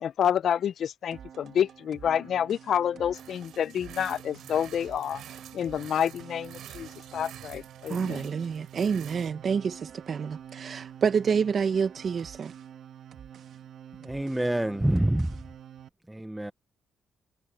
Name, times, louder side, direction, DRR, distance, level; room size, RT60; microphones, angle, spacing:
voice 1, 0.0-5.2 5.5-8.3, left 9 dB, 65° left, 0.3 m, -28 dB
sound 1, 1.1-15.9, right 9 dB, 65° right, 1.4 m, -47 dB
sound 2, 3.1-9.3, right 11 dB, 85° right, 5.9 m, -48 dB
voice 2, 7.9-12.5, right 6 dB, 45° right, 0.7 m, -28 dB
voice 3, 14.0-15.4 16.1-16.5, right 1 dB, 5° right, 0.5 m, -27 dB
cardioid pair, 135°, 0 cm